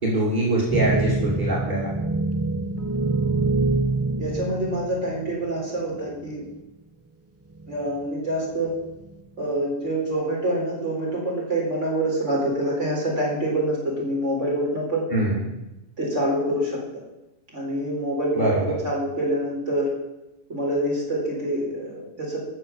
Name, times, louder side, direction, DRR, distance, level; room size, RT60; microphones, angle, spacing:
voice 1, 0.0-1.9 15.1-15.4 18.3-18.8, right 1 dB, 35° right, -5 dB, 3.1 m, -23 dB
sound 1, 0.7-5.5 6.2-6.3 7.5-8.0 8.7-9.1, right 3 dB, 15° right, 0.5 m, -25 dB
voice 2, 4.2-6.4 7.7-8.7 9.4-15.0 16.0-16.8 17.5-19.9 20.5-22.4, right 1 dB, 65° right, -3 dB, 4.6 m, -26 dB
14.0 x 6.3 x 7.1 m, 0.96 s
omnidirectional pair, 1.3 m